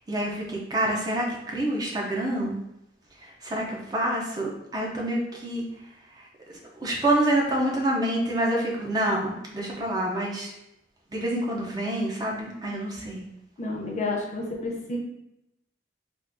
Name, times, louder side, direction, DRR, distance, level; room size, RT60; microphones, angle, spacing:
voice 1, 0.1-2.6 3.2-5.6 6.8-10.5 11.1-13.3, right 1 dB, 20° right, -2 dB, 0.4 m, -27 dB
voice 2, 13.6-15.0, left 2 dB, 40° left, 0 dB, 0.6 m, -30 dB
3.5 x 2.4 x 2.5 m, 0.85 s
head